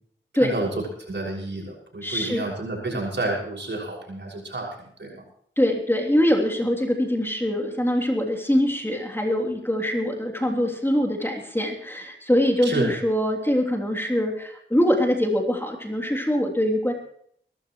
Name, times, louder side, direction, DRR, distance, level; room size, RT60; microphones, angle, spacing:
voice 1, 1.0-4.7 5.0-5.2 12.6-12.9, right 2 dB, 60° right, -2 dB, 6.2 m, -29 dB
voice 2, 2.0-2.4 5.6-16.9, equal, 10° left, 1 dB, 3.1 m, -23 dB
22.5 x 14.0 x 3.2 m, 0.64 s
cardioid pair, 40°, 21 cm